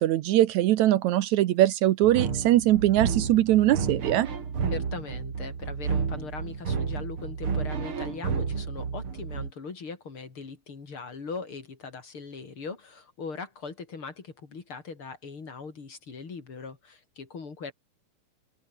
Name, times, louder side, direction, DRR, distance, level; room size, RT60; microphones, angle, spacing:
voice 1, 0.0-4.3, right 14 dB, 75° right, 2.1 m, -21 dB
sound 1, 2.0-9.5, right 6 dB, 45° right, 3.4 m, -31 dB
voice 2, 4.7-17.7, left 4 dB, 45° left, 3.8 m, -40 dB
open air
omnidirectional pair, 3.5 m